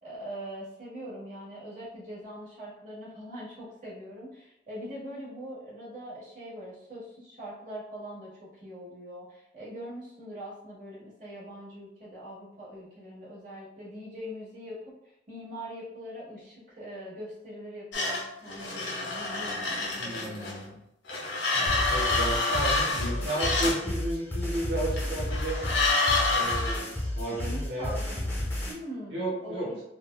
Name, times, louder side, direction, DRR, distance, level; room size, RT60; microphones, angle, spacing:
voice 1, 0.0-14.9 15.3-20.6 27.3-29.8, equal, 45° right, -7 dB, 1.4 m, -42 dB
sound 1, 17.9-20.6 21.1-23.9 25.0-26.8, left 3 dB, 90° left, 0.7 m, -28 dB
voice 2, 20.0-20.8 21.5-25.6 26.3-27.9 29.1-29.8, right 1 dB, 75° right, -6 dB, 0.9 m, -33 dB
sound 2, 21.7-28.7, left 1 dB, 10° left, 0.7 m, -32 dB
3.6 x 2.3 x 2.2 m, 0.83 s
head